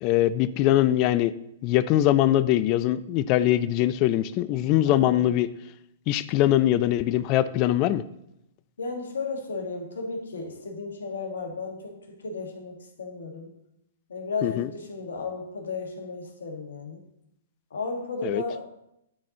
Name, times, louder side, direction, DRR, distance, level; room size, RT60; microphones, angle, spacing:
voice 1, 0.0-1.3 1.6-5.5 6.1-8.0 14.4-14.7 18.2-18.4, left 13 dB, 40° left, 16 dB, 0.4 m, -22 dB
voice 2, 4.8-5.3 8.8-13.5 14.1-17.0 17.7-18.7, left 3 dB, 80° left, 3 dB, 1.4 m, -34 dB
11.5 x 4.2 x 2.8 m, 0.81 s
hypercardioid pair, 120°, 0 cm